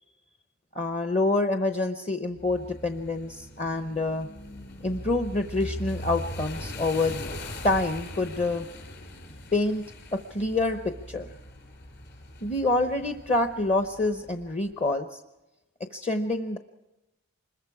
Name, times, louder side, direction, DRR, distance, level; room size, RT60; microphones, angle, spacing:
voice 1, 0.7-4.3 4.8-7.3 7.6-8.7 9.5-9.8 10.1-11.3 12.4-15.2 15.9-16.6, left 2 dB, 30° left, 6 dB, 0.8 m, -27 dB
sound 1, 2.3-14.5, left 1 dB, 50° left, 7.1 m, -40 dB
25.5 x 21.5 x 4.8 m, 1.0 s
head